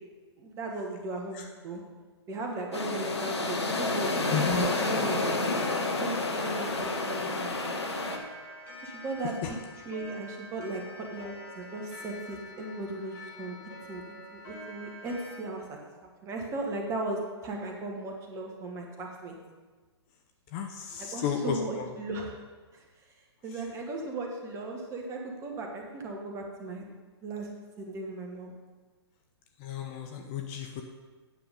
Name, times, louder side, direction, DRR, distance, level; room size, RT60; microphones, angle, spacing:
voice 1, 0.4-1.8 2.3-5.3 6.0-7.6 7.9-8.0 8.8-9.6 9.8-13.6 13.9-14.0 14.3-15.6 16.2-19.4 21.0-22.3 22.7-22.8 23.4-26.8 27.2-28.5, right 2 dB, 20° right, 1 dB, 1.4 m, -37 dB
sound 1, 2.7-8.2, left 2 dB, 75° left, 1.3 m, -30 dB
Clock, 3.3-15.4, left 2 dB, 55° left, 2.9 m, -46 dB
voice 2, 4.3-4.7 9.4-9.5 20.5-21.9 29.6-30.8, left 6 dB, 30° left, 4 dB, 0.6 m, -32 dB
9.0 x 7.0 x 5.1 m, 1.3 s
figure-of-eight pair, 120°, 14 cm